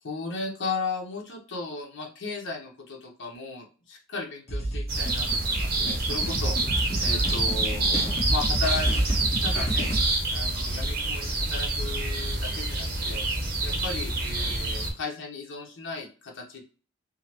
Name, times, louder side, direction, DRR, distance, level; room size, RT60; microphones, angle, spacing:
voice 1, 0.0-9.0 9.4-9.9 10.3-13.2 13.6-16.6, left 3 dB, 65° left, -1 dB, 0.9 m, -35 dB
sound 1, 4.5-10.0, right 1 dB, 35° left, 1.0 m, -29 dB
sound 2, 4.9-14.9, right 2 dB, 50° right, 0.9 m, -27 dB
3.7 x 2.0 x 2.9 m, 0.38 s
head